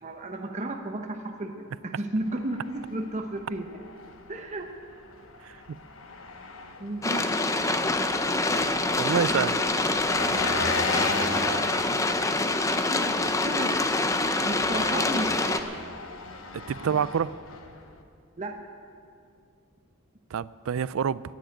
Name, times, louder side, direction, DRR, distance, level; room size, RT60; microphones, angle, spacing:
voice 1, 0.0-3.8 4.3-4.7 6.8-7.9 12.9-13.8 14.4-15.3 18.4-18.7, right 1 dB, 35° right, 2 dB, 0.9 m, -33 dB
Engine, 2.2-18.0, left 3 dB, 70° left, 1.2 m, -37 dB
voice 2, 5.4-5.8 9.0-9.6 16.5-17.4 20.3-21.2, right 7 dB, 70° right, 19 dB, 0.4 m, -27 dB
sound 1, 7.0-15.6, left 2 dB, 15° left, 0.7 m, -26 dB
13.5 x 10.0 x 9.0 m, 2.3 s
head